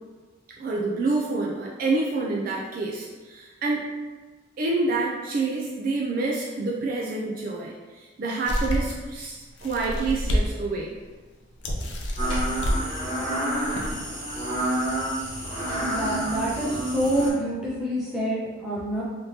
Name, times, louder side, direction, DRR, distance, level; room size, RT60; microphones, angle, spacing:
voice 1, 0.6-3.8 4.6-10.9, right 3 dB, 45° right, -3 dB, 0.3 m, -27 dB
sound 1, 8.5-9.0 9.6-10.5 10.9-11.0 11.6-12.8 13.5-13.9, equal, 60° left, 0.5 m, -27 dB
sound 2, 12.2-17.3, right 1 dB, 25° left, 1.1 m, -29 dB
voice 2, 15.8-19.0, right 1 dB, 5° right, -8 dB, 0.7 m, -27 dB
3.4 x 2.8 x 2.7 m, 1.3 s
head